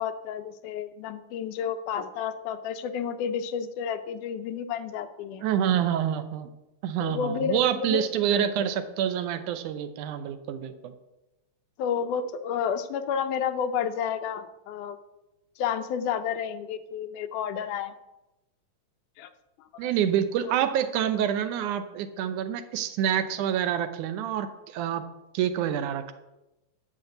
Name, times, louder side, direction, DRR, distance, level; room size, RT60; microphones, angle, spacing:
voice 1, 0.0-5.5 7.0-8.0 11.8-15.0 15.6-17.9 19.2-19.3 19.7-19.9, left 7 dB, 85° left, 9 dB, 2.3 m, -31 dB
voice 2, 5.4-6.5 6.8-10.9 19.8-25.1 25.3-26.1, right 9 dB, 80° right, 10 dB, 2.3 m, -27 dB
11.5 x 6.0 x 8.0 m, 0.99 s
omnidirectional pair, 3.5 m